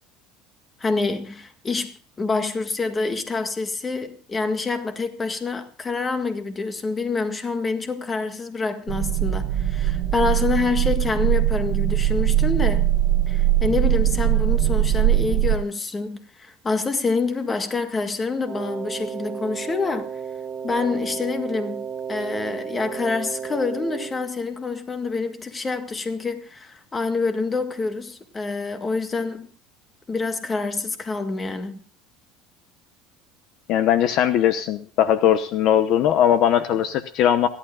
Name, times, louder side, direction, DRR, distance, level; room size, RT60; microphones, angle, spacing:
voice 1, 0.8-12.9 13.3-20.2 20.6-29.5 30.1-31.8, left 4 dB, 20° left, 1.8 m, -27 dB
sound 1, 8.9-15.6, right 13 dB, 65° right, 1.4 m, -21 dB
Wind instrument woodwind instrument, 18.4-24.2, right 7 dB, 15° right, 2.5 m, -33 dB
voice 2, 33.7-37.5, left 10 dB, 55° left, 0.9 m, -19 dB
28.0 x 11.5 x 2.4 m
cardioid pair, 135°, 0 cm